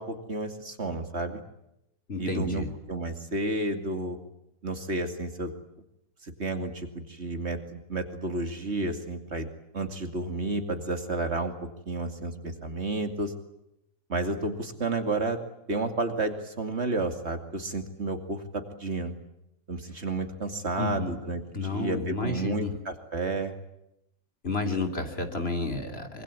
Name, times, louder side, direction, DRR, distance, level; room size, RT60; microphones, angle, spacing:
voice 1, 0.0-1.4 2.2-4.2 4.6-5.5 6.2-9.5 9.7-13.3 14.1-15.4 15.7-19.1 19.7-21.4 21.7-23.5, right 2 dB, 50° right, 6 dB, 2.7 m, -31 dB
voice 2, 2.1-2.7 20.8-21.2 21.5-22.7 24.4-26.2, left 3 dB, 45° left, 5 dB, 3.3 m, -31 dB
25.5 x 24.0 x 8.5 m, 0.84 s
omnidirectional pair, 1.5 m